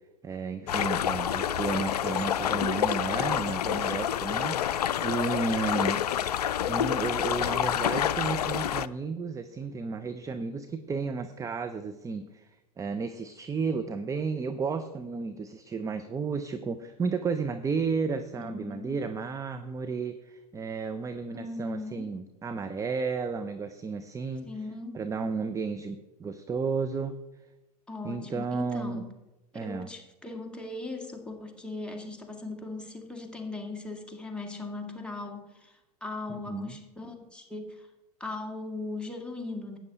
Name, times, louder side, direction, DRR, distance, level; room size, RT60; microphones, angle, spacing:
voice 1, 0.2-6.0 6.7-12.5 12.8-24.5 24.9-27.2 28.0-29.1 29.5-29.9 36.3-36.7, right 4 dB, 15° right, 9 dB, 0.6 m, -33 dB
sound 1, 0.7-8.9, left 10 dB, 75° left, 0.5 m, -28 dB
voice 2, 18.4-19.0 21.3-22.2 24.5-25.1 27.9-29.1 29.5-37.9 38.2-39.8, left 2 dB, 5° left, 2 dB, 2.1 m, -39 dB
12.0 x 9.1 x 4.1 m, 0.98 s
figure-of-eight pair, 90°, 20 cm